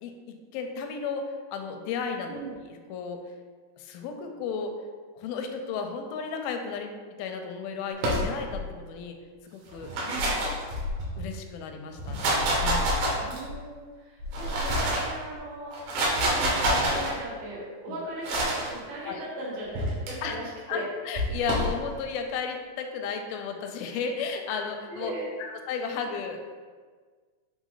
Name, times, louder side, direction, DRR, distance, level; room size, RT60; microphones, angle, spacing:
voice 1, 0.0-3.2 3.8-4.7 5.2-9.2 9.5-9.9 10.3-10.5 11.2-13.0 17.9-18.0 19.0-19.3 20.2-20.4 20.7-25.1 25.4-26.4, left 5 dB, 85° left, 4 dB, 2.2 m, -34 dB
sound 1, 8.0-8.6 9.7-11.2 11.9-13.6 14.2-15.1 15.7-17.1 18.2-18.7 19.7-20.1 21.1-21.7, right 1 dB, 70° right, 2.8 m, -27 dB
voice 2, 10.1-10.4 13.2-20.9 24.9-25.3, right 1 dB, 85° right, -6 dB, 3.4 m, -38 dB
7.2 x 3.5 x 3.9 m, 1.5 s
omnidirectional pair, 4.7 m